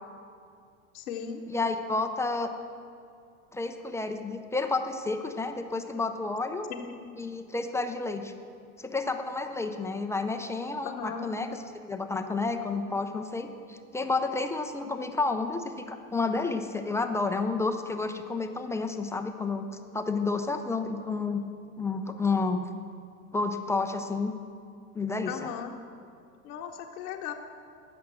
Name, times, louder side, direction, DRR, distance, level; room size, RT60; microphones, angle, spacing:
voice 1, 0.9-1.4 6.7-6.9 10.8-11.3 25.3-25.7 26.4-27.3, left 8 dB, 80° left, 0 dB, 1.1 m, -37 dB
voice 2, 1.5-2.5 3.5-6.7 7.2-8.3 8.8-11.5 11.8-19.7 19.9-21.4 21.8-22.6 23.3-24.3 24.9-25.5, left 3 dB, 5° left, 6 dB, 0.3 m, -30 dB
14.5 x 6.0 x 7.4 m, 2.3 s
hypercardioid pair, 100°, 43 cm